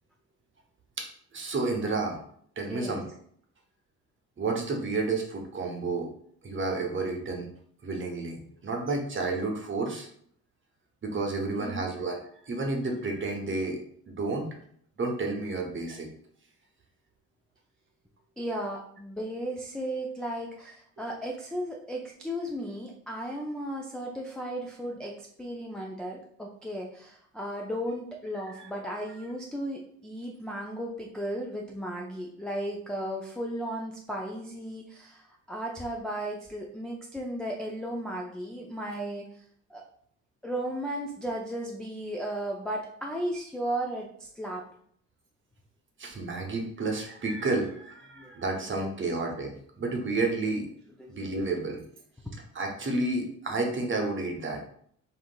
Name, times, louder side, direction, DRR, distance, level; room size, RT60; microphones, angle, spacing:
voice 1, 1.3-2.2 2.6-3.0 4.4-6.1 6.4-7.5 7.8-10.1 11.0-12.2 12.4-13.8 14.1-14.5 15.0-16.1 28.4-28.7 46.0-50.7 51.1-51.8 52.5-54.6, right 3 dB, 30° right, 1 dB, 0.8 m, -31 dB
voice 2, 2.7-3.0 11.6-11.9 18.4-39.3 39.7-39.8 40.4-44.6 48.2-48.3 48.7-48.9 51.0-51.2, right 1 dB, ahead, -3 dB, 0.3 m, -35 dB
3.6 x 2.4 x 2.2 m, 0.64 s
hypercardioid pair, 50°, 41 cm